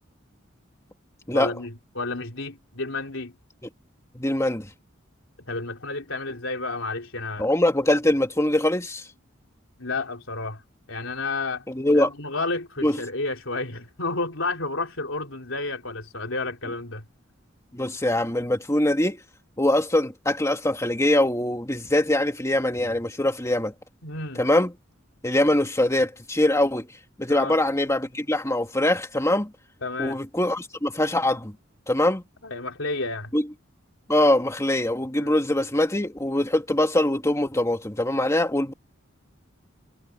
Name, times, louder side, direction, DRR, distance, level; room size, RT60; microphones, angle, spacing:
voice 1, 1.3-3.3 5.5-7.5 9.8-10.6 10.9-11.6 11.9-17.0 24.0-24.4 27.3-27.6 29.8-30.2 32.4-33.3 35.2-35.4, left 3 dB, 75° left, 3.9 m, -31 dB
voice 2, 4.1-4.7 7.4-9.0 11.7-12.1 12.8-13.0 17.7-19.2 19.6-23.7 24.4-24.7 25.2-26.9 27.2-29.5 30.0-31.5 31.9-32.2 33.3-33.4 34.1-38.7, left 1 dB, 15° left, 2.2 m, -23 dB
head